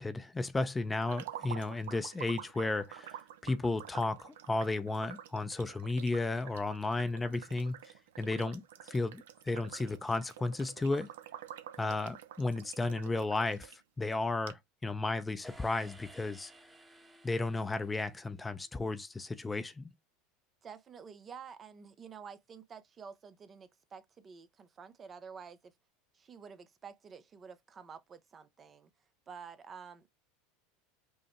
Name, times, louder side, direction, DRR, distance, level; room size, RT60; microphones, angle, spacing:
voice 1, 0.0-3.2 3.4-7.8 8.2-11.1 11.8-13.7 14.0-16.5 17.2-19.9, left 2 dB, 15° left, 0.5 m, -33 dB
sound 1, 1.0-13.8 14.1-14.2 14.5-14.6, right 11 dB, 80° right, 0.5 m, -48 dB
sound 2, 15.4-18.6, right 1 dB, 15° right, 1.0 m, -56 dB
voice 2, 20.6-25.7 26.1-28.9 29.3-30.1, right 6 dB, 30° right, 0.5 m, -50 dB
5.4 x 2.0 x 3.0 m
hypercardioid pair, 90°, 0 cm